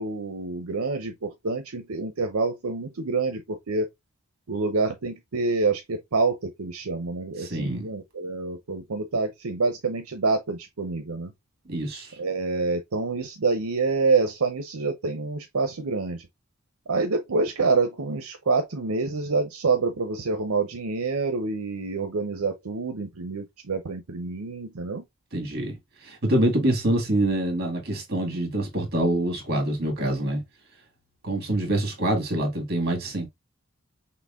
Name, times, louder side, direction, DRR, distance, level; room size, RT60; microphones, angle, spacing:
voice 1, 0.0-3.9 4.5-11.3 12.2-16.3 16.9-25.0, right 4 dB, 80° right, 0.7 m, -27 dB
voice 2, 7.4-7.9 11.7-12.1 25.3-25.8 26.0-30.4 31.2-33.3, right 1 dB, 45° right, 2.0 m, -25 dB
5.9 x 2.1 x 3.6 m
head